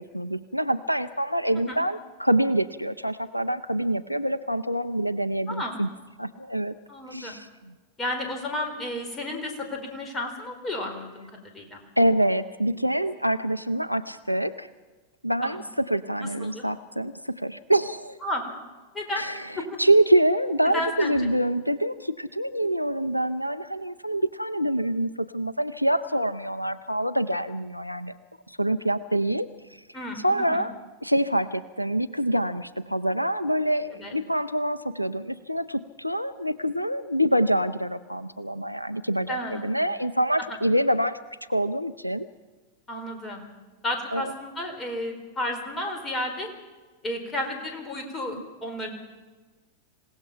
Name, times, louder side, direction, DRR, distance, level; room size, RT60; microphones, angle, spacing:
voice 1, 0.0-5.9 6.2-6.7 7.1-7.5 12.0-14.7 15.2-18.2 19.2-19.5 19.8-28.1 28.5-29.8 30.2-30.7 31.0-41.2 41.5-42.3 44.1-44.3, right 1 dB, 90° left, 15 dB, 0.5 m, -26 dB
voice 2, 6.9-7.4 8.0-11.8 15.4-15.6 16.4-16.6 18.2-18.4 18.9-19.2 19.6-19.8 20.6-21.3 29.9-30.6 33.9-34.2 39.3-39.8 42.9-43.5 43.8-46.5 47.0-48.9, left 1 dB, 20° left, 3 dB, 4.4 m, -32 dB
27.0 x 17.0 x 5.8 m, 1.3 s
figure-of-eight pair, 90°, 0 cm